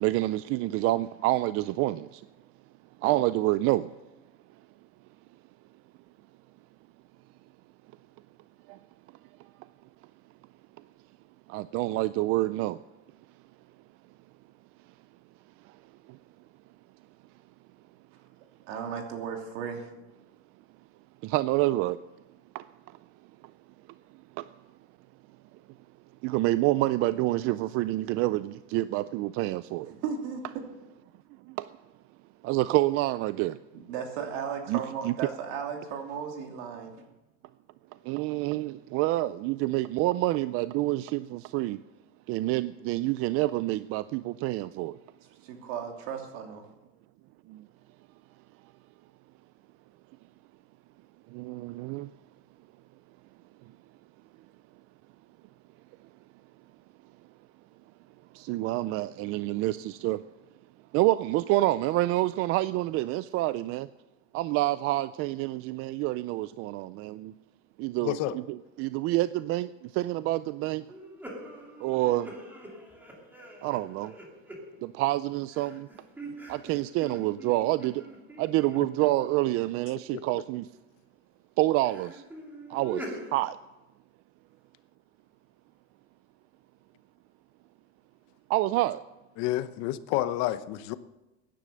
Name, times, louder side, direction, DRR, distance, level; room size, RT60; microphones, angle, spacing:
voice 1, 0.0-2.2 3.0-3.9 11.5-12.8 21.2-22.0 22.5-22.6 26.2-29.9 31.6-31.7 32.4-33.6 34.7-35.1 38.1-41.8 42.3-45.0 47.5-47.6 51.3-52.1 58.4-60.2 60.9-63.9 64.3-67.3 67.8-68.2 68.8-70.8 71.8-72.3 73.6-74.1 74.8-75.9 76.5-78.0 78.4-80.7 81.6-82.2 82.7-83.0 83.3-83.6 88.5-89.0, right 17 dB, 50° right, 15 dB, 0.4 m, -27 dB
voice 2, 18.7-19.9 29.9-30.4 33.7-36.9 45.4-46.6, right 7 dB, 75° right, 3 dB, 2.9 m, -35 dB
voice 3, 68.0-68.4 89.4-91.0, left 14 dB, 60° left, 13 dB, 0.9 m, -29 dB
sound 1, 70.9-75.1 75.5-79.5 80.1-80.7 81.7-83.3, right 1 dB, 5° right, 2.8 m, -44 dB
15.5 x 10.5 x 6.4 m, 1.0 s
cardioid pair, 150°, 30 cm